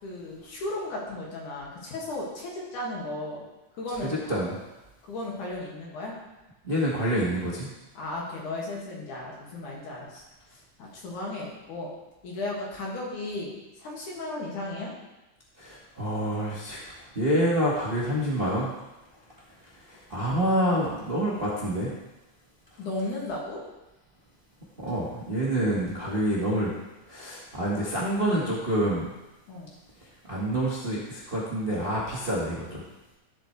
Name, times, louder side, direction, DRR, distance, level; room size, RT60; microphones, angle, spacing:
voice 1, 0.0-3.4 3.8-4.2 5.1-6.2 8.0-10.2 10.8-11.9 12.2-14.9 22.8-23.6 29.5-29.7, left 2 dB, 75° left, -4 dB, 3.5 m, -35 dB
voice 2, 4.1-4.6 6.6-7.7 15.6-18.7 19.8-21.9 24.8-26.7 27.1-29.1 30.3-32.8, right 1 dB, 35° right, -6 dB, 0.9 m, -27 dB
12.0 x 7.7 x 3.3 m, 1.0 s
omnidirectional pair, 3.6 m